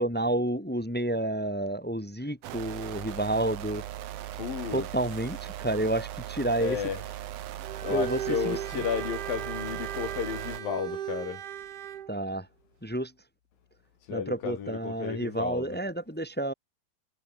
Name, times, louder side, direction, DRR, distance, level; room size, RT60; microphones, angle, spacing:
voice 1, 0.0-3.8 4.7-6.8 7.8-8.5 12.1-12.5 12.8-13.1 14.1-16.5, right 1 dB, 10° left, 0.5 m, -30 dB
sound 1, 2.4-10.6, right 12 dB, 90° right, 3.3 m, -39 dB
voice 2, 4.3-4.9 6.6-7.0 7.8-11.4 14.1-15.8, left 8 dB, 75° left, 4.5 m, -33 dB
Bowed string instrument, 7.6-12.1, right 10 dB, 65° right, 3.0 m, -36 dB
omnidirectional pair, 4.1 m